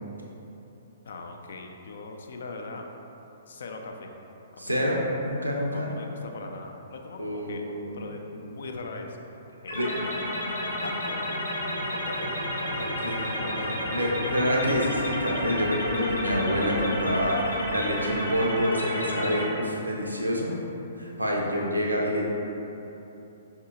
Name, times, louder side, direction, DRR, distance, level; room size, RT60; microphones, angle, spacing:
voice 1, 1.1-2.8 3.5-4.1 4.5-5.1 5.7-7.6 7.9-9.8 10.8-11.6 11.9-12.8 13.6-14.0 14.2-14.3, left 3 dB, 60° left, 3 dB, 0.4 m, -40 dB
voice 2, 4.6-5.9 7.2-7.9 9.7-9.9 12.8-20.6 21.0-22.3, equal, 85° right, -2 dB, 0.6 m, -27 dB
sound 1, 9.7-19.5, left 1 dB, 75° left, 0.7 m, -31 dB
5.4 x 2.7 x 2.4 m, 3.0 s
figure-of-eight pair, 120°, 0 cm